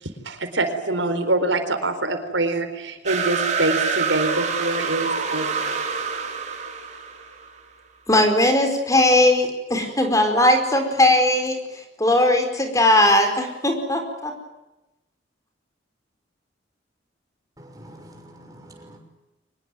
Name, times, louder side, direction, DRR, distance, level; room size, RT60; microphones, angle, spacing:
voice 1, 0.0-5.7, right 2 dB, 85° right, 8 dB, 4.4 m, -25 dB
sound 1, 3.1-7.5, right 5 dB, 40° right, 4.0 m, -26 dB
voice 2, 8.1-11.6 12.0-14.3, left 1 dB, 20° left, 5 dB, 4.7 m, -18 dB
voice 3, 17.6-19.0, right 1 dB, 20° right, 3 dB, 6.3 m, -45 dB
24.5 x 21.0 x 9.3 m, 0.98 s
head